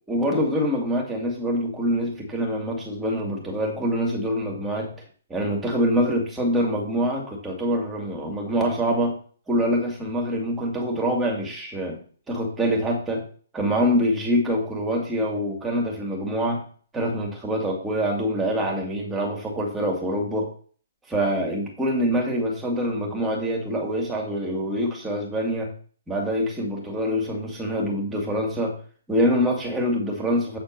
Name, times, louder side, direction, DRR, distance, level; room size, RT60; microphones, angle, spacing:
voice 1, 0.1-4.9 5.3-9.2 9.5-12.0 12.3-13.2 13.5-16.6 16.9-20.5 21.1-25.7 26.1-28.7 29.1-30.6, equal, 10° right, 0 dB, 2.4 m, -25 dB
8.5 x 4.4 x 6.5 m, 0.43 s
hypercardioid pair, 155°, 0 cm